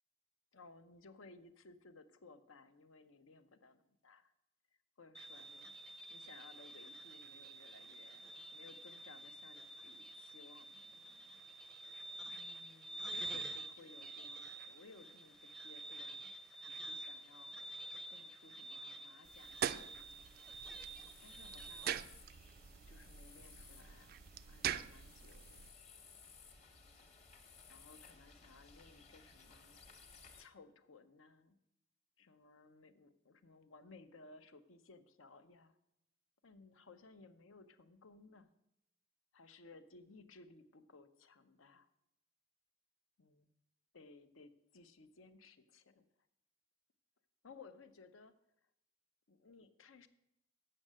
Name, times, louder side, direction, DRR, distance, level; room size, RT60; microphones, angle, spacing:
voice 1, 0.5-4.3 5.0-11.4 12.3-16.3 16.6-17.6 18.1-20.3 21.2-22.0 22.9-24.1 24.5-25.6 27.1-27.2 27.7-29.8 30.4-31.6 32.2-35.8 36.4-38.5 39.3-41.9 43.2-43.5 43.9-46.0 47.4-48.4 49.3-50.1, left 3 dB, 75° left, 11 dB, 0.7 m, -60 dB
sound 1, 5.1-21.9, right 1 dB, 5° left, 0.5 m, -49 dB
sound 2, 19.3-25.7, right 9 dB, 45° right, 0.3 m, -44 dB
sound 3, 19.6-30.4, left 5 dB, 30° left, 1.0 m, -60 dB
7.7 x 6.4 x 7.4 m, 0.81 s
head